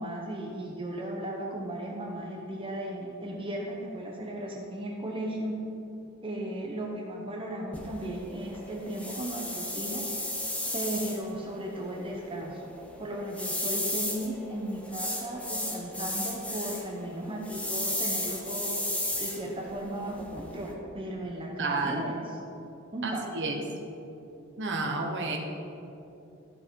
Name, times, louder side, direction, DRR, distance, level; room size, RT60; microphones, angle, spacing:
voice 1, 0.0-5.6 6.2-10.1 10.7-12.7 13.0-18.8 19.2-22.4 22.9-23.3, right 1 dB, 25° right, -1 dB, 0.9 m, -36 dB
sound 1, 7.7-20.7, left 1 dB, 5° left, 1.0 m, -35 dB
voice 2, 21.6-22.1 23.0-23.6 24.6-25.4, right 3 dB, 60° right, 2 dB, 1.3 m, -30 dB
14.5 x 5.5 x 4.7 m, 2.7 s
head